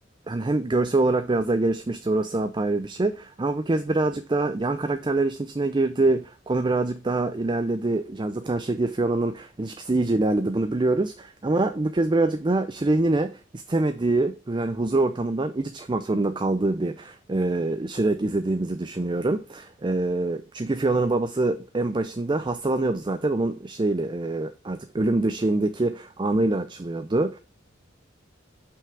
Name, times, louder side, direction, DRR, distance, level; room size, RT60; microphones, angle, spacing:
voice 1, 0.3-27.4, right 2 dB, 25° right, 0.5 m, -25 dB
5.7 x 5.5 x 4.6 m
head